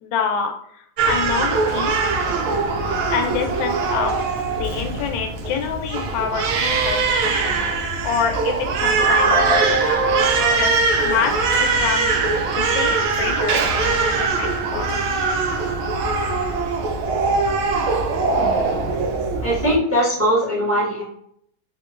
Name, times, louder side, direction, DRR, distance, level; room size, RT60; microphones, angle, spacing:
voice 1, 0.0-2.0 3.1-4.2 4.6-7.0 7.2-9.3 9.8-10.0 10.6-10.7 11.0-12.2 12.5-15.0, left 6 dB, 75° left, 3 dB, 1.2 m, -27 dB
Crying sobbing, 1.0-19.8, right 4 dB, 90° right, 1.4 m, -22 dB
voice 2, 9.0-10.6 19.4-21.0, right 1 dB, 15° right, -7 dB, 0.5 m, -20 dB
3.6 x 2.6 x 2.4 m, 0.69 s
omnidirectional pair, 2.2 m